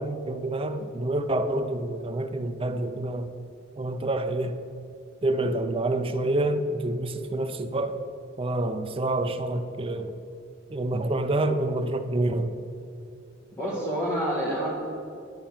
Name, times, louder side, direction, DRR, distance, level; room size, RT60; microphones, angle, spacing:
voice 1, 0.0-3.3 3.8-4.6 5.2-8.0 8.4-10.1 10.7-12.6, right 2 dB, 25° right, 8 dB, 0.5 m, -27 dB
voice 2, 13.5-14.7, equal, 15° left, -10 dB, 2.1 m, -28 dB
10.5 x 4.4 x 7.3 m, 2.5 s
head